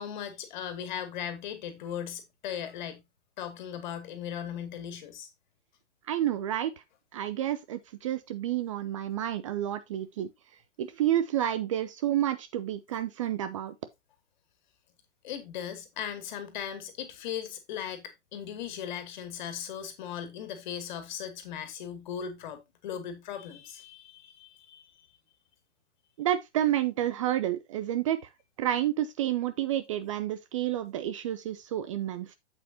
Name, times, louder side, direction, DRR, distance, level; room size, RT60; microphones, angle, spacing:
voice 1, 0.0-3.0 3.4-5.3 15.2-24.8, left 9 dB, 40° left, 2.4 m, -38 dB
voice 2, 6.1-6.7 7.1-10.3 10.8-13.7 26.2-28.2 28.6-32.3, right 12 dB, 30° right, 0.5 m, -30 dB
8.3 x 8.0 x 2.8 m
figure-of-eight pair, 115°, 35 cm